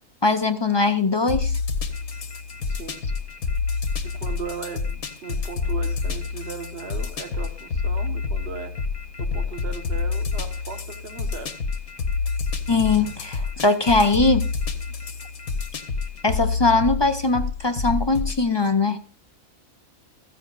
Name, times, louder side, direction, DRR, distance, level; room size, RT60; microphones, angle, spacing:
voice 1, 0.2-1.6 12.7-14.5 16.2-19.0, left 3 dB, 40° left, 8 dB, 0.3 m, -21 dB
sound 1, 1.3-18.4, left 4 dB, 85° left, 1.6 m, -28 dB
Telephone, 1.9-16.2, left 3 dB, 20° left, 1.1 m, -44 dB
voice 2, 2.7-3.0 4.0-8.7 9.2-11.5, right 6 dB, 45° right, 6 dB, 1.5 m, -37 dB
15.5 x 14.5 x 2.5 m, 0.37 s
omnidirectional pair, 1.5 m